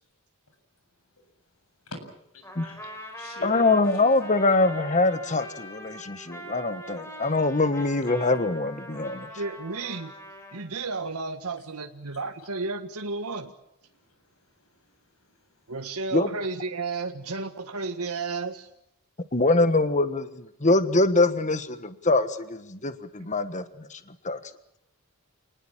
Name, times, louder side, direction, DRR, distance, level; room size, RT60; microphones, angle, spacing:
voice 1, 2.3-4.0 14.6-15.0, left 1 dB, 80° left, 6 dB, 7.6 m, -42 dB
Trumpet, 2.4-10.6, equal, 10° left, 5.2 m, -42 dB
voice 2, 3.4-9.3 16.1-16.3 19.3-24.4, left 2 dB, 35° left, 11 dB, 1.4 m, -24 dB
voice 3, 9.4-10.1 10.5-13.5 15.7-18.7, right 3 dB, 90° right, 6 dB, 1.7 m, -32 dB
28.5 x 20.0 x 7.4 m, 0.80 s
head